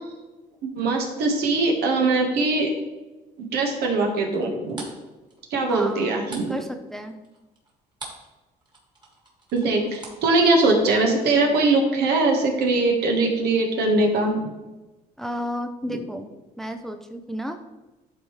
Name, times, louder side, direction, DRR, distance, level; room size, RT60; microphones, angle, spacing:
voice 1, 0.6-2.7 3.4-4.8 5.5-6.5 9.5-14.5, right 2 dB, 75° right, 2 dB, 1.4 m, -21 dB
sound 1, 4.3-8.3 8.6-11.0, right 2 dB, 25° right, 2.0 m, -43 dB
voice 2, 5.7-6.2 6.5-7.1 15.2-16.3 16.6-17.6, equal, ahead, 6 dB, 0.4 m, -32 dB
11.0 x 3.9 x 3.2 m, 1.1 s
cardioid pair, 110°, 17 cm